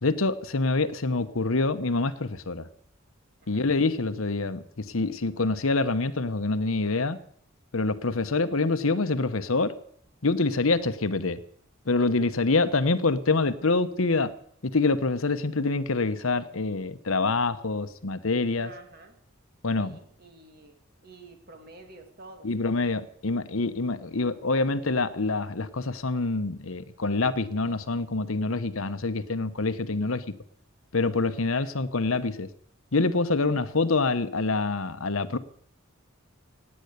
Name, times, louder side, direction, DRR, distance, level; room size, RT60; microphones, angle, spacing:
voice 1, 0.0-2.7 3.5-7.2 7.7-9.7 10.2-11.4 11.9-14.3 14.6-18.7 19.6-20.0 22.4-30.3 30.9-32.5 32.9-35.4, left 3 dB, 70° left, 12 dB, 1.1 m, -26 dB
voice 2, 8.2-8.5 18.5-19.2 19.8-20.8 21.0-22.7 31.5-31.7, right 2 dB, 45° right, 5 dB, 2.5 m, -50 dB
17.0 x 9.9 x 8.1 m, 0.64 s
head